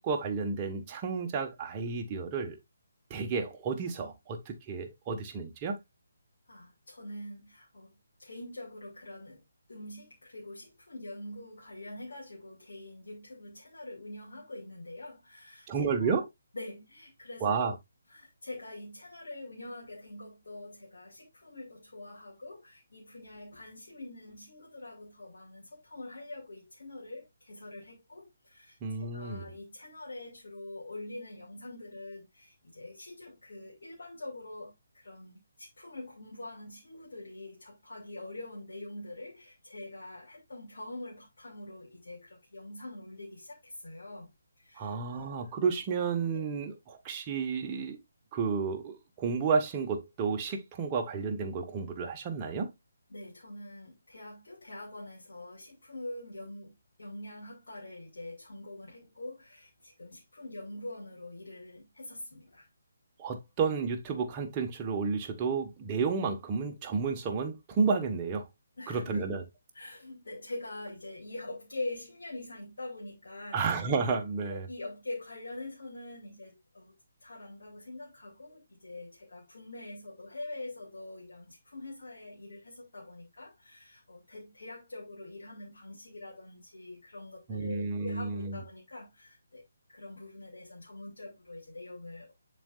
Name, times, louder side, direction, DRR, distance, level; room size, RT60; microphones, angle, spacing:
voice 1, 0.0-2.6 3.1-5.8 15.7-16.3 17.4-17.7 28.8-29.4 44.8-48.0 48.3-52.7 63.2-68.4 68.9-69.4 73.5-74.7 87.5-88.6, right 5 dB, 20° right, 1.2 m, -31 dB
voice 2, 6.5-7.9 8.2-9.4 9.7-16.2 16.5-17.7 18.1-44.3 44.6-45.5 46.3-46.4 53.1-56.7 57.0-62.7 68.8-69.2 69.7-73.6 74.5-76.9 77.2-89.6 89.9-92.3, left 2 dB, 55° left, 2.3 m, -44 dB
11.0 x 4.3 x 2.4 m
figure-of-eight pair, 145°, 0 cm